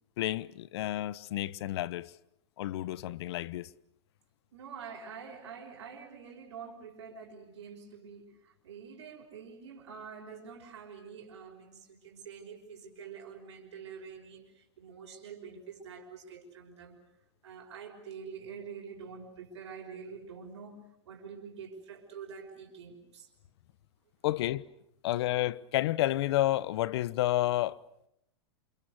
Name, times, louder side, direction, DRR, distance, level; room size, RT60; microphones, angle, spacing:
voice 1, 0.2-2.1 2.6-3.7 24.2-24.7 25.0-27.8, left 15 dB, 70° left, 0.9 m, -30 dB
voice 2, 4.5-17.0 17.4-20.8 21.0-23.3, right 6 dB, 80° right, 5.8 m, -46 dB
29.0 x 28.0 x 6.5 m
hypercardioid pair, 120°, 14 cm